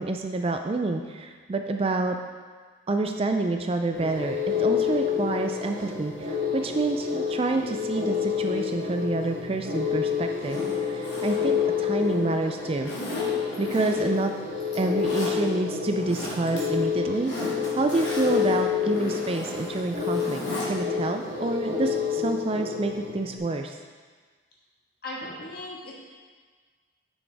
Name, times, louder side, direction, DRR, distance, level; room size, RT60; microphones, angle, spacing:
voice 1, 0.0-2.2 2.9-12.9 13.6-14.3 14.8-17.3 17.7-20.4 20.7-23.8, right 2 dB, 30° right, 5 dB, 0.3 m, -28 dB
sound 1, 3.9-23.4, left 7 dB, 45° right, 1.8 m, -29 dB
Zipper (clothing), 10.3-12.3 12.8-14.2 14.6-15.3 15.8-16.6 16.9-20.7 21.0-21.1, left 1 dB, 65° left, 2.2 m, -37 dB
voice 2, 25.0-25.9, left 1 dB, 50° left, -4 dB, 1.6 m, -37 dB
9.5 x 6.2 x 3.4 m, 1.5 s
head